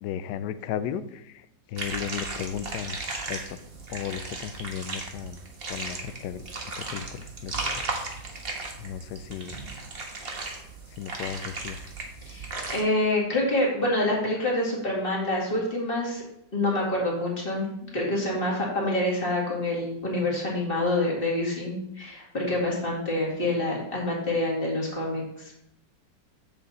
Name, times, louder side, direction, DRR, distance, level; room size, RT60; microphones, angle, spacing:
voice 1, 0.0-3.0 3.3-3.6 3.9-5.4 5.7-6.4 6.8-7.8 8.8-9.5 11.0-11.8, left 9 dB, 75° left, 13 dB, 1.1 m, -35 dB
sound 1, 1.8-12.8, right 3 dB, 35° right, 1.2 m, -36 dB
voice 2, 12.2-16.2 16.5-25.5, left 1 dB, 30° left, -3 dB, 2.5 m, -27 dB
7.7 x 7.0 x 4.2 m, 0.80 s
omnidirectional pair, 2.0 m